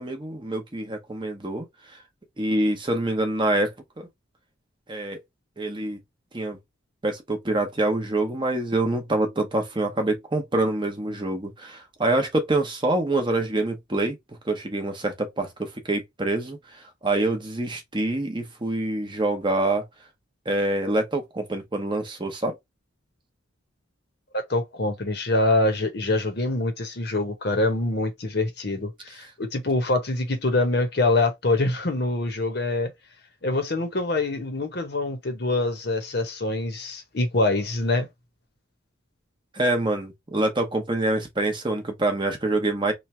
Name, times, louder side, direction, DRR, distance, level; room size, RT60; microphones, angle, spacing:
voice 1, 0.0-2.0 2.4-4.1 4.9-5.2 5.6-6.0 6.3-6.6 7.0-14.2 14.4-19.8 20.5-22.6 39.5-42.9, right 2 dB, 25° right, 0.8 m, -26 dB
voice 2, 24.3-32.9 33.4-38.1, left 2 dB, 50° left, 0.9 m, -25 dB
3.1 x 2.3 x 4.2 m
head